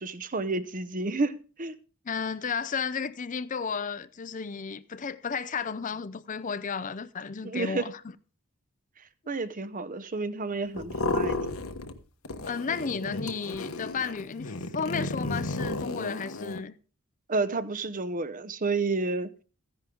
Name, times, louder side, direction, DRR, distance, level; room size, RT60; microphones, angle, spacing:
voice 1, 0.0-1.8 7.4-7.9 9.3-11.5 17.3-19.3, right 3 dB, 40° right, 0.8 m, -30 dB
voice 2, 2.1-8.0 12.5-16.7, left 5 dB, 35° left, 0.5 m, -33 dB
sound 1, 10.8-12.0 12.2-16.6, left 2 dB, 75° left, 1.3 m, -33 dB
15.0 x 10.5 x 3.8 m
head